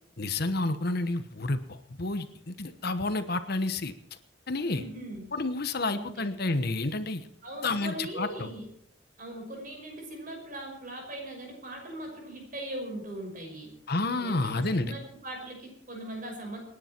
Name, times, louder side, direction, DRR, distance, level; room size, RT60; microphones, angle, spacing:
voice 1, 0.2-3.9 4.5-4.8 5.3-7.2 7.6-8.5 13.9-14.9, left 2 dB, 55° left, 10 dB, 1.1 m, -30 dB
voice 2, 4.6-5.3 5.9-6.3 7.4-8.7 9.2-13.7 14.2-16.6, right 1 dB, 45° right, 2 dB, 5.9 m, -40 dB
28.0 x 10.0 x 4.5 m, 0.68 s
head